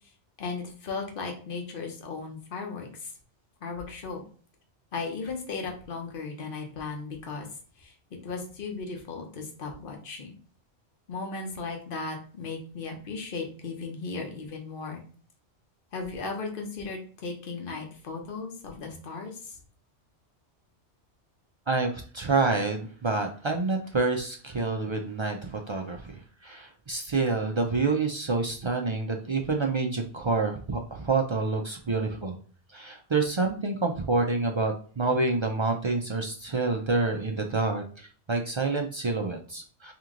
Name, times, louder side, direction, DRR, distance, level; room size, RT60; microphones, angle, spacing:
voice 1, 0.4-3.1 3.6-4.2 4.9-7.5 7.8-7.9 8.2-10.3 11.1-15.0 15.9-19.6, left 4 dB, 50° left, 3 dB, 1.1 m, -36 dB
voice 2, 21.7-32.4 32.7-39.9, right 3 dB, 50° right, 3 dB, 0.3 m, -28 dB
3.3 x 3.0 x 3.7 m, 0.42 s
omnidirectional pair, 1.2 m